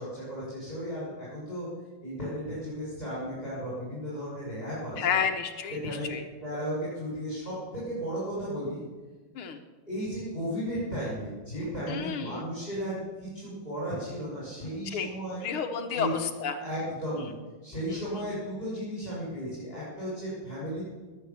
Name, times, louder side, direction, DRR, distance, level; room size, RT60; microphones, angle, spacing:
voice 1, 0.0-1.7 2.0-5.0 5.8-6.1 6.4-8.8 9.9-15.4 15.9-16.1 16.6-17.3 17.6-20.8, equal, 25° left, -9 dB, 7.1 m, -34 dB
voice 2, 5.0-6.2 9.4-9.6 11.9-12.4 14.9-15.1 15.4-16.6 17.1-17.3 17.9-18.2, left 7 dB, 90° left, 5 dB, 2.0 m, -31 dB
20.5 x 9.5 x 7.3 m, 1.3 s
omnidirectional pair, 2.3 m